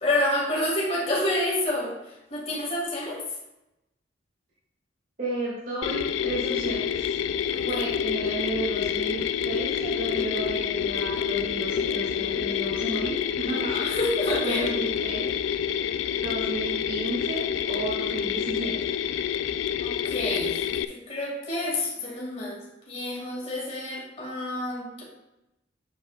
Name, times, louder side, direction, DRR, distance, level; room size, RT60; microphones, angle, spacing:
voice 1, 0.0-1.9 2.3-3.2 7.5-7.8 13.5-14.8 19.8-25.0, left 1 dB, 35° left, -3 dB, 2.1 m, -29 dB
voice 2, 5.2-7.1 7.7-9.2 9.5-14.0 14.4-15.3 16.2-18.8, right 2 dB, 45° right, -7 dB, 2.2 m, -33 dB
Mechanisms, 5.8-20.8, left 8 dB, 85° left, 0.3 m, -28 dB
7.8 x 7.4 x 2.4 m, 0.93 s
head